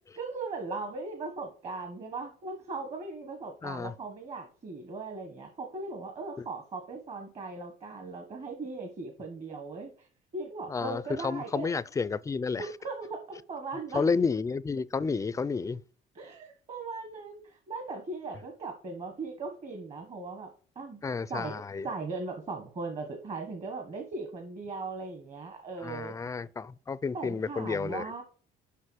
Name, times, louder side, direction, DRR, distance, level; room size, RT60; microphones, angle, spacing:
voice 1, 0.2-11.7 12.6-14.0 16.1-20.5 20.7-21.0 21.3-21.5 21.8-26.1 27.1-28.2, right 3 dB, 40° right, 1.3 m, -38 dB
voice 2, 3.6-3.9 6.4-6.5 10.7-12.7 13.9-15.8 21.0-21.9 25.8-28.1, left 5 dB, 20° left, 0.4 m, -31 dB
6.7 x 5.3 x 6.3 m
cardioid pair, 110°, 17 cm